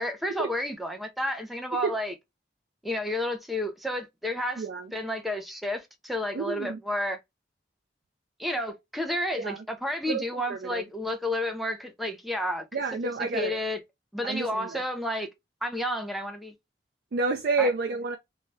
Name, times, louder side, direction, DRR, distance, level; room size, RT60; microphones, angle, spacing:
voice 1, 0.0-2.1 2.8-7.2 8.4-13.8 14.1-15.3 15.6-16.5 17.6-17.7, left 1 dB, ahead, 0.5 m, -31 dB
voice 2, 6.3-6.8 9.4-9.6 10.1-10.2 10.5-10.8 12.7-13.6 14.2-14.7 17.1-18.2, right 4 dB, 55° right, 0.4 m, -29 dB
2.7 x 2.2 x 3.1 m
head